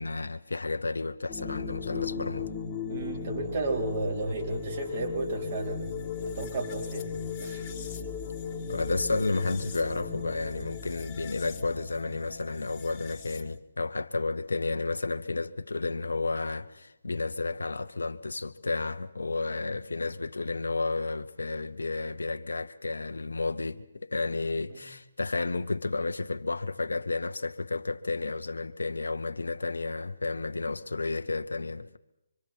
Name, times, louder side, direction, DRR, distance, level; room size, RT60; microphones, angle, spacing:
voice 1, 0.0-2.5 8.7-32.0, left 3 dB, 85° left, 0.8 m, -32 dB
sound 1, 1.3-13.6, left 6 dB, 25° left, 1.7 m, -37 dB
voice 2, 2.9-5.9 6.2-7.1 7.4-7.7 24.7-24.9, right 3 dB, 50° right, 4.5 m, -33 dB
25.0 x 25.0 x 4.5 m
figure-of-eight pair, 145°, 0 cm